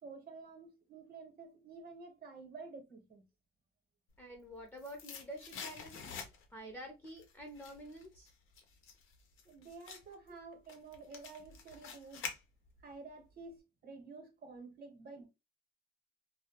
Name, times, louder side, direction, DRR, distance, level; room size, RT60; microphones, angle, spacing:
voice 1, 0.0-3.3 9.4-12.3 12.8-15.3, right 4 dB, 50° right, 0.9 m, -51 dB
voice 2, 4.2-6.1 6.5-8.3, equal, 10° left, 0.6 m, -48 dB
sound 1, 4.3-6.7 7.0-12.9 13.2-13.3, left 6 dB, 90° left, 0.6 m, -48 dB
2.3 x 2.0 x 2.8 m
cardioid pair, 90°, 20 cm